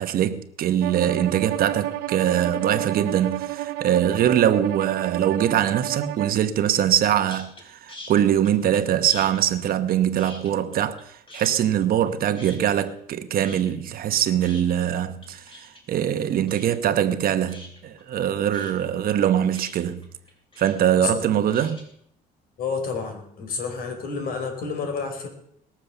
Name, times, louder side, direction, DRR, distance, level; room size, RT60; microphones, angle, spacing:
voice 1, 0.0-20.0 20.6-21.9, right 10 dB, 60° right, 1.1 m, -23 dB
Bowed string instrument, 0.8-6.4, right 15 dB, 90° right, 0.7 m, -31 dB
sound 1, 7.3-7.6 7.9-8.8 9.1-11.0 11.3-12.1 12.4-13.1 13.4-21.8, left 2 dB, 30° left, 4.8 m, -44 dB
voice 2, 22.6-25.3, left 4 dB, 60° left, 4.7 m, -29 dB
20.0 x 7.3 x 7.1 m
cardioid pair, 110°, 17 cm